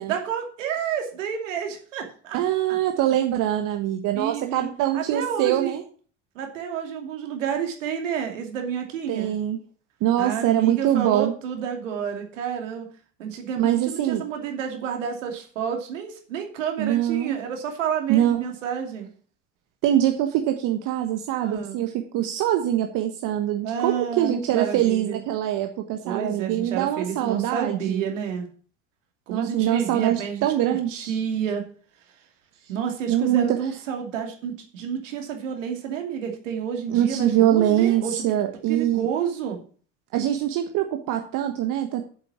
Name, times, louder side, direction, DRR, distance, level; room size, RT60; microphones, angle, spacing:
voice 1, 0.1-2.4 2.7-2.8 4.1-5.7 6.3-9.3 10.2-12.9 13.2-19.1 21.4-21.8 23.6-25.2 26.0-28.5 29.3-31.6 32.7-39.6, right 7 dB, 80° right, 3 dB, 2.8 m, -30 dB
voice 2, 2.3-5.8 9.1-9.6 10.0-11.3 13.6-14.2 16.8-17.4 18.1-18.4 19.8-28.1 29.3-31.1 33.1-33.6 36.9-39.1 40.1-42.0, right 12 dB, 55° right, 4 dB, 1.5 m, -23 dB
7.9 x 7.6 x 6.0 m, 0.42 s
hypercardioid pair, 75°, 37 cm